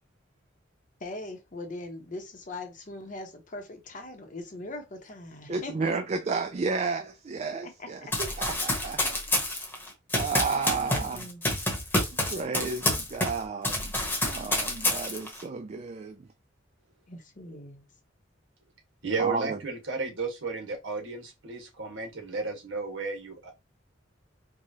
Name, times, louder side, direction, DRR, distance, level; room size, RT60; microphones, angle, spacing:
voice 1, 1.0-5.9 7.8-8.1 8.8-8.9 10.5-11.4 17.1-17.8, left 2 dB, 45° left, 0.9 m, -41 dB
voice 2, 5.5-9.2 10.1-11.2 12.3-13.9 14.3-16.3 19.2-19.6, right 4 dB, 35° right, 0.3 m, -32 dB
Run, 8.1-13.4 13.6-15.4, left 2 dB, 10° left, 1.1 m, -28 dB
voice 3, 19.0-23.5, right 4 dB, 85° right, 1.3 m, -33 dB
4.7 x 2.3 x 2.7 m
head